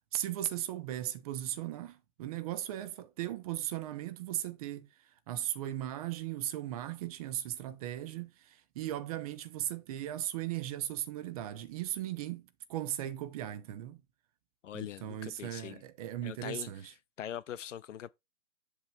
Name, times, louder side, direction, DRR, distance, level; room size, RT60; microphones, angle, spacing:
voice 1, 0.1-4.9 5.3-14.0 14.7-16.9, right 12 dB, 25° right, 0.7 m, -37 dB
voice 2, 14.6-15.8 16.2-16.9 17.2-18.1, left 10 dB, 55° left, 0.6 m, -42 dB
7.8 x 3.3 x 5.5 m
hypercardioid pair, 135°, 44 cm